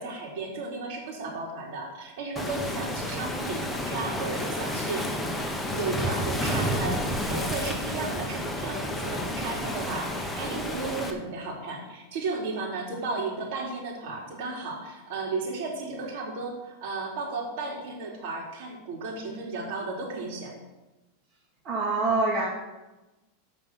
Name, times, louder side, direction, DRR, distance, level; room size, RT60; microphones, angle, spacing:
voice 1, 0.0-5.1 5.7-20.5, right 3 dB, 65° right, -1 dB, 3.9 m, -34 dB
Waves surf, 2.4-11.1, equal, 5° left, 1.4 m, -31 dB
voice 2, 21.6-22.5, right 3 dB, 35° right, -5 dB, 2.4 m, -25 dB
15.0 x 5.4 x 6.3 m, 1.1 s
supercardioid pair, 130°, 0 cm